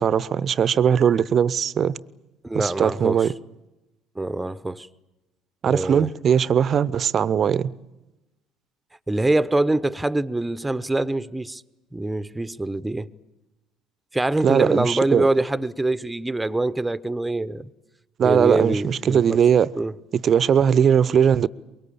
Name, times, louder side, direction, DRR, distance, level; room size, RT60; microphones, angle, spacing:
voice 1, 0.0-2.0 2.5-3.3 5.6-7.7 14.4-15.3 18.2-19.7 20.2-21.5, right 8 dB, 40° right, 0.8 m, -19 dB
voice 2, 2.4-3.3 4.1-4.9 5.7-6.1 9.1-11.6 11.9-13.1 14.1-17.7 18.2-19.4 19.7-19.9, right 2 dB, 10° right, 1.0 m, -24 dB
24.0 x 22.5 x 8.6 m
figure-of-eight pair, 60°, 0 cm